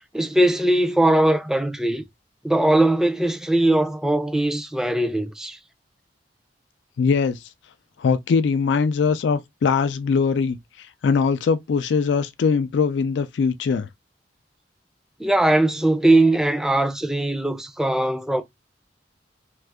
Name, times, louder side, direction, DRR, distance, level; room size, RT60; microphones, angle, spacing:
voice 1, 0.1-2.0 2.4-5.6 15.2-18.4, right 1 dB, 5° right, 0.4 m, -20 dB
voice 2, 7.0-7.4 8.0-13.9, left 5 dB, 85° left, 0.3 m, -21 dB
2.7 x 2.4 x 3.3 m
head